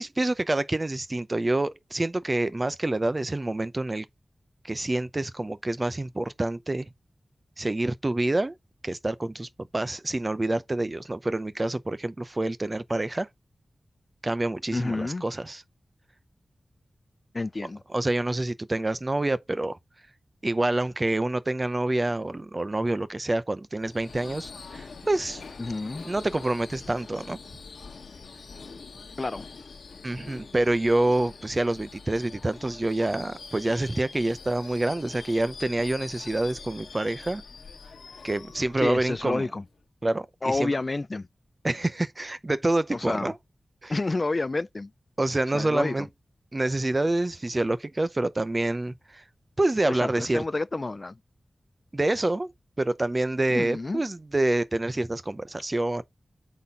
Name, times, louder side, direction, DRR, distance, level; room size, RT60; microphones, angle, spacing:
voice 1, 0.0-4.1 4.6-6.9 7.6-8.6 8.8-13.3 14.2-15.6 17.9-19.8 20.4-25.4 26.0-27.4 30.0-37.4 38.2-39.5 40.0-40.8 41.6-43.3 43.8-43.9 45.2-46.1 46.5-49.2 49.6-50.4 51.9-52.5 52.8-56.0, right 2 dB, 30° right, 0.6 m, -27 dB
voice 2, 14.7-15.2 17.3-17.8 25.6-26.1 29.2-29.5 38.8-39.6 40.4-41.3 42.9-43.3 43.9-44.9 45.5-46.0 49.8-51.2 53.5-54.0, left 3 dB, 40° left, 0.3 m, -29 dB
Subway metro underground / Screech, 23.8-39.8, left 4 dB, 90° left, 1.4 m, -44 dB
8.0 x 4.2 x 3.6 m
wide cardioid pair, 80°, 0 cm